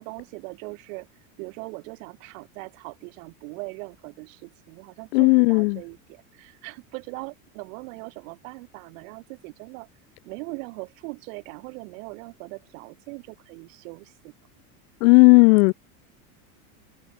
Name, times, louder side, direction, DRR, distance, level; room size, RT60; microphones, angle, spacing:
voice 1, 0.0-9.9 10.2-14.3, right 30 dB, 65° right, 4.8 m, -40 dB
voice 2, 5.1-5.8 15.0-15.7, left 29 dB, 65° left, 0.7 m, -15 dB
supercardioid pair, 140°, 42 cm